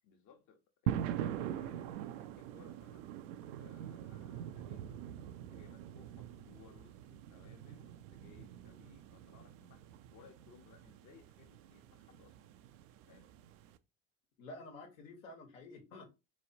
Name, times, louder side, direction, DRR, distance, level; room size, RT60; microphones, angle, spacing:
voice 1, 0.0-3.1 3.6-9.8 10.1-12.3 13.1-13.3, left 6 dB, 50° left, 0.9 m, -62 dB
sound 1, 0.9-13.8, right 10 dB, 70° right, 0.5 m, -43 dB
voice 2, 14.4-16.1, left 2 dB, 80° left, 1.2 m, -50 dB
4.1 x 3.0 x 2.7 m
hypercardioid pair, 70°, 39 cm